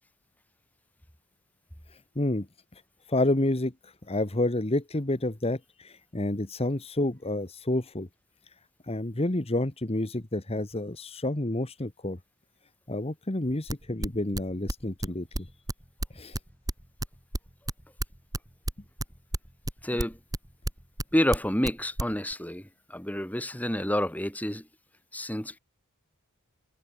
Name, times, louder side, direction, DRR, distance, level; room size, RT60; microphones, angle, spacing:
voice 1, 2.1-2.5 3.1-8.1 8.9-12.2 12.9-15.5 16.1-16.4, left 1 dB, 30° left, 1.3 m, -29 dB
sound 1, 13.5-17.1 17.3-21.0 21.3-21.7 22.0-22.3, right 1 dB, 15° right, 2.3 m, -30 dB
voice 2, 19.8-20.2 21.1-24.7 25.1-25.6, equal, 5° left, 2.9 m, -29 dB
head